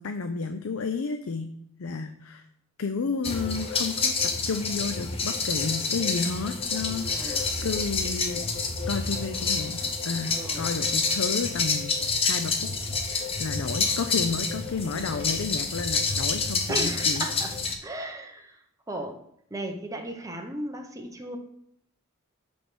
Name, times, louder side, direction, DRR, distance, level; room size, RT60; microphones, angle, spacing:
voice 1, 0.0-1.5 1.8-2.4 2.8-8.4 8.9-11.9 12.2-12.7 13.1-17.3, left 4 dB, 80° left, 7 dB, 0.5 m, -31 dB
sound 1, 3.2-17.7, left 4 dB, 30° left, 0.9 m, -28 dB
voice 2, 7.1-7.4 10.3-10.7 16.7-18.6 18.9-19.2 19.5-21.4, right 1 dB, 15° right, 3 dB, 0.9 m, -35 dB
9.2 x 3.4 x 6.1 m, 0.71 s
head